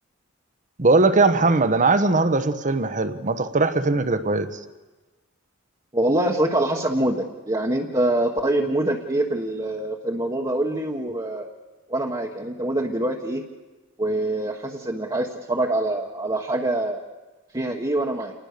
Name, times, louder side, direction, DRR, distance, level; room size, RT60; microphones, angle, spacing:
voice 1, 0.8-4.5, right 3 dB, 40° right, 10 dB, 1.2 m, -20 dB
voice 2, 5.9-11.5 11.9-13.4 14.0-17.0 17.5-18.3, right 1 dB, 20° right, -2 dB, 1.4 m, -24 dB
28.0 x 20.0 x 6.8 m, 1.2 s
head